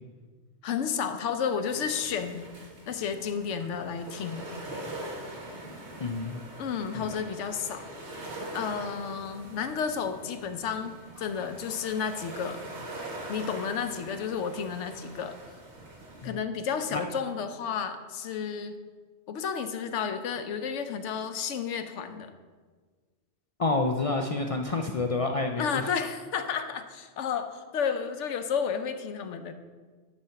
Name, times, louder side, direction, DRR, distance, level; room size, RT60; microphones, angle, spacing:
voice 1, 0.6-2.4 2.9-4.4 6.6-7.8 8.5-12.6 13.3-15.4 16.2-18.8 19.3-22.3 25.6-29.5, left 6 dB, 75° left, 9 dB, 1.0 m, -32 dB
sound 1, 1.6-16.3, right 1 dB, 65° right, 1.8 m, -43 dB
voice 2, 6.0-6.4 6.9-7.1 16.2-16.4 16.9-17.0 23.6-25.9, left 3 dB, 60° left, 3 dB, 0.3 m, -29 dB
9.8 x 4.3 x 5.7 m, 1.5 s
omnidirectional pair, 1.2 m